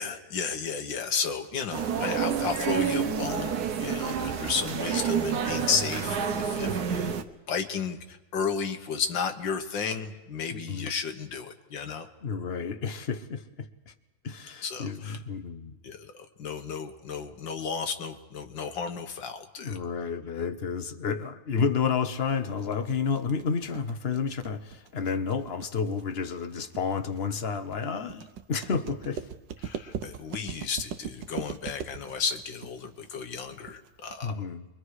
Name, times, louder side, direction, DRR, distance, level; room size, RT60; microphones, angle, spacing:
voice 1, 0.0-3.5 3.8-7.2 7.5-12.1 14.6-15.2 15.8-19.8 29.6-34.4, left 6 dB, 80° left, 6 dB, 2.0 m, -33 dB
sound 1, 1.7-7.2, right 7 dB, 60° right, 1.4 m, -29 dB
voice 2, 10.5-10.9 12.2-13.9 14.2-15.8 19.6-29.3 34.2-34.7, left 6 dB, 40° left, 9 dB, 1.0 m, -31 dB
sound 2, 22.3-34.3, right 8 dB, 80° right, 1.6 m, -40 dB
29.5 x 23.0 x 4.9 m, 1.1 s
omnidirectional pair, 2.0 m